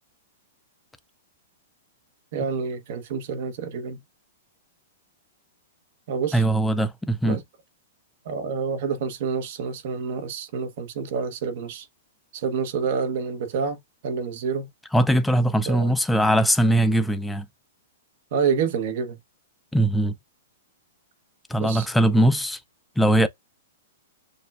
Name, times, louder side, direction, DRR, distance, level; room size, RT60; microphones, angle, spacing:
voice 1, 2.3-4.0 6.1-6.4 7.2-7.4 8.3-11.8 12.3-13.8 14.0-14.7 15.7-15.9 18.3-19.2 21.6-21.9, right 6 dB, 50° right, 1.0 m, -28 dB
voice 2, 6.3-7.4 14.9-17.5 19.7-20.2 21.5-22.6 23.0-23.3, right 1 dB, 5° left, 0.4 m, -20 dB
6.5 x 2.3 x 2.3 m
hypercardioid pair, 150°, 0 cm